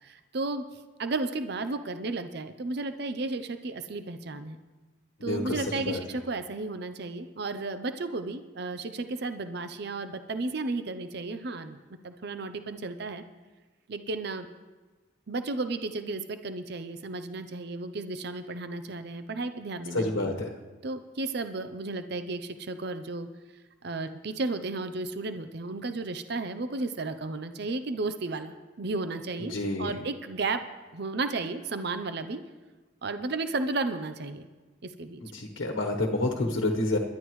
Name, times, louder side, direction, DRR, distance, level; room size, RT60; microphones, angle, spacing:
voice 1, 0.0-4.6 5.2-11.8 12.0-13.2 13.9-14.5 15.3-20.3 20.8-23.3 23.8-30.6 30.9-32.4 33.0-34.5 34.8-35.5, right 3 dB, 55° right, 10 dB, 0.6 m, -33 dB
voice 2, 5.2-6.0 19.9-20.5 29.5-30.0 35.2-37.0, left 2 dB, 80° left, 1 dB, 1.2 m, -29 dB
21.5 x 11.5 x 3.1 m, 1.3 s
head